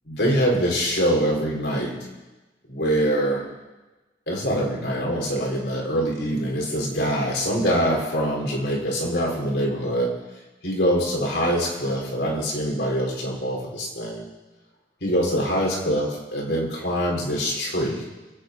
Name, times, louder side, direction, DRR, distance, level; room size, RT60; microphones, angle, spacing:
voice 1, 0.1-2.0 2.7-3.4 4.3-10.1 10.6-14.3 15.0-18.0, equal, 75° left, -2 dB, 4.0 m, -24 dB
24.0 x 8.6 x 5.2 m, 1.1 s
head